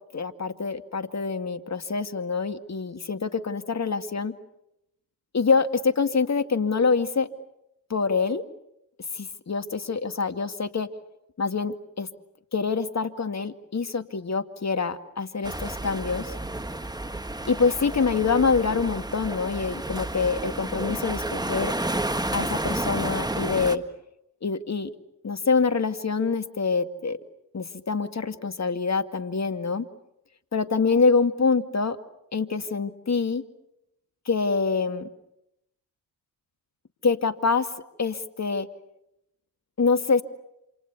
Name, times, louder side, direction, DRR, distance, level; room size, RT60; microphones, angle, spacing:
voice 1, 0.1-4.4 5.3-7.3 7.9-8.4 9.1-10.9 11.4-12.1 12.5-16.3 17.5-21.7 22.3-23.8 24.4-24.9 25.2-27.2 27.5-29.9 30.5-32.0 32.3-33.4 34.3-35.1 37.0-37.7 38.0-38.7 39.8-40.2, left 4 dB, 35° left, 10 dB, 2.2 m, -25 dB
sound 1, 15.4-23.8, right 1 dB, 10° right, 1.6 m, -31 dB
28.5 x 27.5 x 6.9 m, 0.83 s
hypercardioid pair, 45°, 47 cm